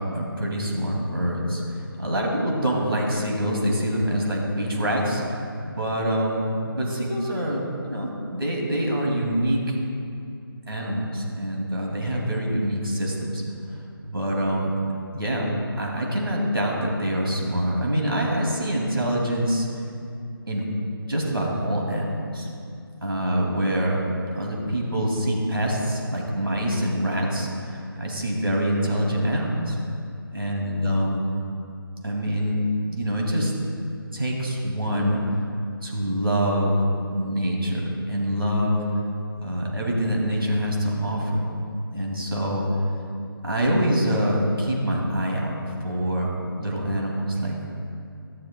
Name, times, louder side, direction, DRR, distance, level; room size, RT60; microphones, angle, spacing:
voice 1, 0.0-1.6 2.0-5.2 5.6-9.8 10.7-13.4 14.1-14.7 15.1-15.5 15.8-19.7 20.5-20.7 21.1-22.5 23.0-24.1 24.3-29.8 30.3-31.3 32.0-32.6 32.9-33.5 34.1-35.2 35.8-36.8 37.1-38.8 39.3-41.4 41.9-42.7 43.4-45.5 45.8-46.3 46.6-47.7, equal, 75° right, -2 dB, 2.4 m, -25 dB
14.0 x 11.0 x 2.2 m, 2.5 s
figure-of-eight pair, 155°, 12 cm